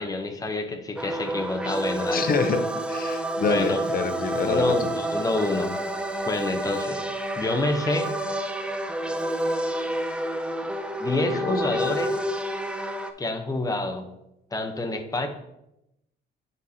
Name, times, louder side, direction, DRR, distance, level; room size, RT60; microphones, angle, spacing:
voice 1, 0.0-2.3 3.5-3.8 4.4-5.7 6.3-7.0 7.4-8.1 11.0-12.2 13.2-14.0 14.5-15.3, left 2 dB, 20° left, 4 dB, 0.9 m, -27 dB
sound 1, 1.0-13.1, right 1 dB, 5° right, 0.5 m, -29 dB
voice 2, 2.1-4.9 11.3-12.0, left 4 dB, 45° left, 8 dB, 0.8 m, -27 dB
10.5 x 4.1 x 2.8 m, 0.85 s
cardioid pair, 90°, 20 cm